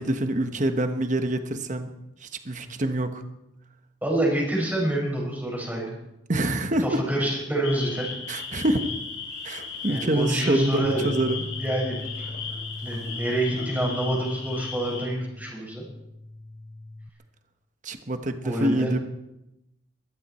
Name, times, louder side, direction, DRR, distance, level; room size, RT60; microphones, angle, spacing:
voice 1, 0.0-1.9 2.2-3.2 6.3-7.0 8.3-8.9 9.4-11.4 17.8-19.0, right 1 dB, 40° right, 7 dB, 1.2 m, -26 dB
voice 2, 4.0-6.0 6.8-8.1 9.9-11.1 11.6-12.3 12.8-15.9 18.4-18.9, right 1 dB, 10° right, -2 dB, 5.7 m, -27 dB
sound 1, 7.6-15.1, left 5 dB, 60° left, 6.1 m, -36 dB
Bass guitar, 10.8-17.1, left 2 dB, 30° left, 0.7 m, -39 dB
22.5 x 14.5 x 4.4 m, 0.89 s
head